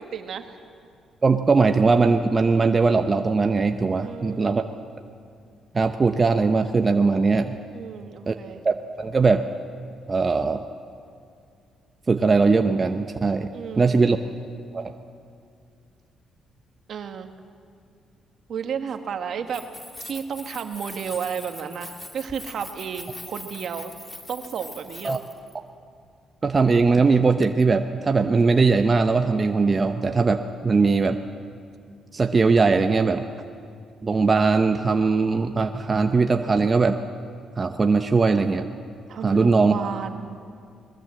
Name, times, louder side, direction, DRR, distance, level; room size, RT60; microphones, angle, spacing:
voice 1, 0.1-0.5 4.0-4.6 7.7-8.6 13.5-14.0 16.9-17.3 18.5-19.7 20.0-23.9 24.3-25.2 39.1-40.3, right 7 dB, 60° right, 6 dB, 1.7 m, -32 dB
voice 2, 1.2-4.6 5.7-7.6 8.3-8.4 8.6-9.4 10.1-10.6 12.1-13.5 13.8-14.2 14.7-14.9 25.0-25.2 26.4-31.2 32.1-33.2 34.0-37.0 37.6-38.7 39.2-39.8, right 4 dB, 30° right, 6 dB, 0.8 m, -20 dB
Keys jangling, 19.4-25.5, left 2 dB, 20° left, 2.2 m, -42 dB
21.0 x 21.0 x 7.7 m, 2.3 s
cardioid pair, 90°, 0 cm